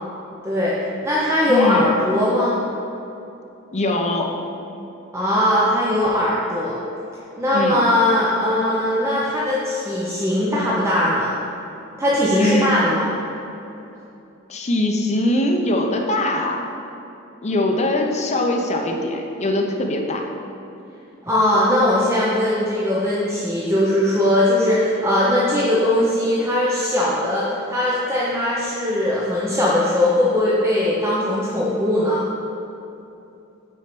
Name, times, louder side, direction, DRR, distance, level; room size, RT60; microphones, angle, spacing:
voice 1, 0.4-0.8 1.0-2.6 5.1-6.8 7.4-11.3 12.0-13.1 21.3-32.2, left 1 dB, 15° right, -7 dB, 0.8 m, -20 dB
voice 2, 1.5-1.9 3.7-4.4 7.5-7.8 12.4-12.7 14.5-16.6 17.4-20.3, left 1 dB, 35° left, 2 dB, 0.7 m, -22 dB
6.3 x 4.4 x 6.1 m, 2.8 s
head